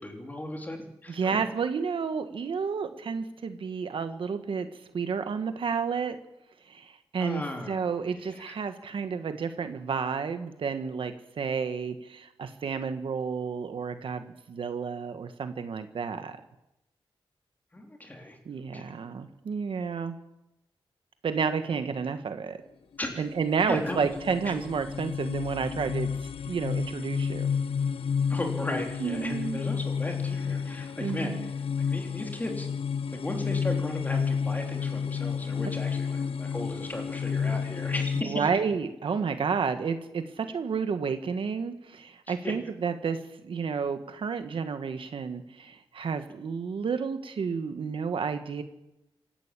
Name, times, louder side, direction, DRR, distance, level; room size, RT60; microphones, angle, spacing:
voice 1, 0.0-1.4 7.2-8.5 17.7-18.4 18.7-18.8 23.0-23.3 23.7-24.1 24.5-24.6 28.3-31.5 31.9-32.7 33.2-38.5 42.3-42.5, left 1 dB, 15° left, 2 dB, 3.6 m, -36 dB
voice 2, 1.1-4.7 4.9-6.2 6.7-16.4 18.4-20.1 21.2-22.6 23.2-26.1 26.4-27.5 29.0-29.6 31.0-31.5 38.2-43.2 43.4-48.6, right 5 dB, 65° right, 8 dB, 1.6 m, -31 dB
sound 1, 23.0-38.2, left 6 dB, 75° left, 1.0 m, -31 dB
26.0 x 12.0 x 8.5 m, 0.89 s
wide cardioid pair, 145°, 10 cm